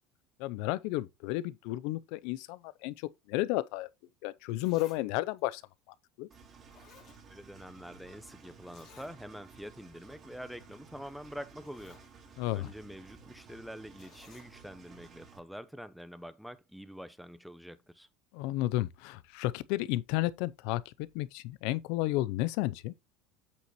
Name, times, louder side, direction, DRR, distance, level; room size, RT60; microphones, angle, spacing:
voice 1, 0.4-3.9 4.2-5.6 6.2-6.3 12.4-12.7 18.3-22.9, left 17 dB, 70° left, 0.6 m, -32 dB
Zipper (clothing), 4.1-4.2 4.6-5.0 5.4-5.5 6.3-6.4 6.7-7.7 7.9-8.0 8.7-9.1 9.6-9.7 10.0-10.2 11.1-11.2 11.5-12.1 14.0-14.5 15.4-15.5, left 8 dB, 50° left, 2.5 m, -58 dB
Engine, 6.3-15.4, right 5 dB, 35° right, 2.4 m, -55 dB
voice 2, 7.3-18.1, equal, ahead, 0.8 m, -46 dB
8.4 x 6.6 x 3.0 m
supercardioid pair, 115°, 0 cm